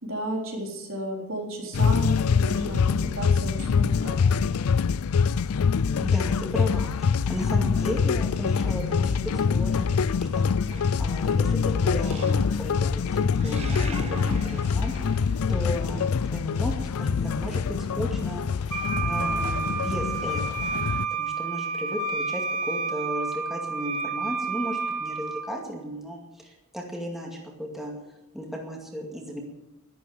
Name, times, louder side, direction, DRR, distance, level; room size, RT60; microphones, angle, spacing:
voice 1, 0.0-2.8 3.1-4.5, equal, 60° right, 0 dB, 3.9 m, -33 dB
sound 1, 1.7-21.1, left 6 dB, 80° left, 0.4 m, -25 dB
voice 2, 5.9-10.5 11.0-20.4 20.8-27.9 28.3-29.4, equal, ahead, -1 dB, 2.3 m, -35 dB
Animal, 10.7-11.5 12.0-12.8 13.1-16.0, right 2 dB, 30° right, 1.3 m, -39 dB
Wind instrument woodwind instrument, 18.7-25.5, right 4 dB, 85° right, 2.5 m, -30 dB
12.0 x 12.0 x 7.8 m, 0.96 s
head